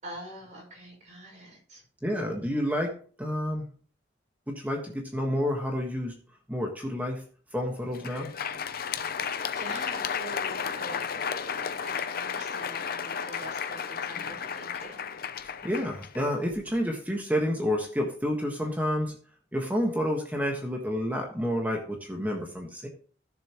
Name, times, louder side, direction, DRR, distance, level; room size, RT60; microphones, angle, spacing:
voice 1, 0.0-1.8 9.4-15.0, right 1 dB, 40° right, -2 dB, 6.1 m, -45 dB
voice 2, 2.0-2.9 3.2-3.7 4.5-6.1 6.5-7.2 7.5-8.3 15.6-19.2 19.5-22.9, equal, 10° right, 0 dB, 1.5 m, -29 dB
Crowd, 7.8-16.8, left 7 dB, 50° left, 0.6 m, -33 dB
15.5 x 7.0 x 3.1 m, 0.43 s
head